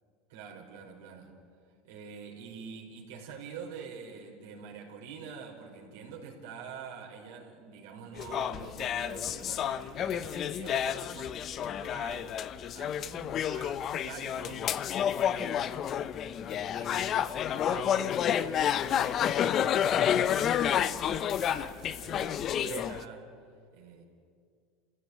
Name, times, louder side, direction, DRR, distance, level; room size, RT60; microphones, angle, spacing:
voice 1, 0.3-1.3 1.8-16.1 16.5-17.2 17.4-23.3 23.7-24.0, right 6 dB, 85° right, 0 dB, 5.2 m, -46 dB
sound 1, 8.2-23.0, left 9 dB, 45° left, 0.9 m, -30 dB
28.5 x 16.5 x 9.8 m, 2.2 s
supercardioid pair, 100°, 0 cm